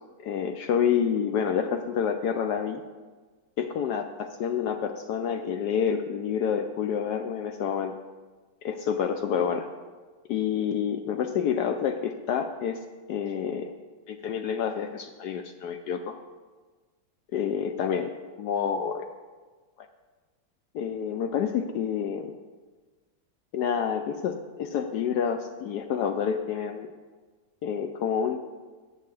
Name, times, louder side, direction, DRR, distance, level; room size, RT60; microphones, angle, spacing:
voice 1, 0.2-2.8 3.6-7.9 8.6-9.7 10.3-12.8 13.1-13.7 14.1-16.0 17.3-18.1 18.4-19.1 20.7-22.3 23.5-26.9 27.6-28.4, left 7 dB, 80° left, 7 dB, 0.9 m, -28 dB
6.7 x 6.6 x 7.5 m, 1.4 s
omnidirectional pair, 2.3 m